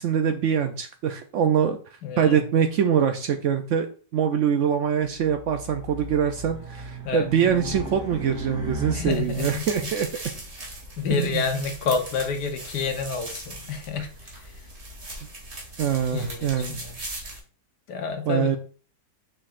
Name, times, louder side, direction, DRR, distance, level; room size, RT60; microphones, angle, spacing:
voice 1, 0.0-1.8 2.2-3.9 4.1-10.1 11.1-11.5 14.0-14.1 15.8-16.8 18.3-18.6, right 8 dB, 85° right, 6 dB, 0.6 m, -24 dB
voice 2, 2.0-2.4 7.0-7.3 8.9-9.6 11.0-14.1 16.1-16.9 17.9-18.6, left 5 dB, 70° left, 5 dB, 1.6 m, -28 dB
Race car auto racing, 5.2-9.5, left 1 dB, 15° right, 2.2 m, -36 dB
sound 1, 9.1-17.4, right 2 dB, 40° right, 2.0 m, -39 dB
6.6 x 6.0 x 2.5 m, 0.41 s
omnidirectional pair, 1.9 m